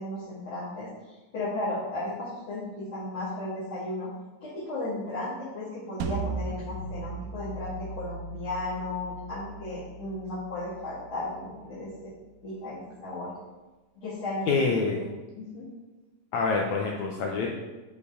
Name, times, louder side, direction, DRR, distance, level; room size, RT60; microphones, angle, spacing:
voice 1, 0.0-4.1 4.4-12.1 12.4-13.3 14.0-14.5 15.3-15.7, left 2 dB, 40° left, -11 dB, 2.8 m, -35 dB
sound 1, 6.0-11.1, right 4 dB, 90° right, 2.4 m, -37 dB
voice 2, 14.5-15.1 16.3-17.5, left 4 dB, 75° left, 0 dB, 1.8 m, -26 dB
7.2 x 5.1 x 4.9 m, 1.2 s
omnidirectional pair, 3.9 m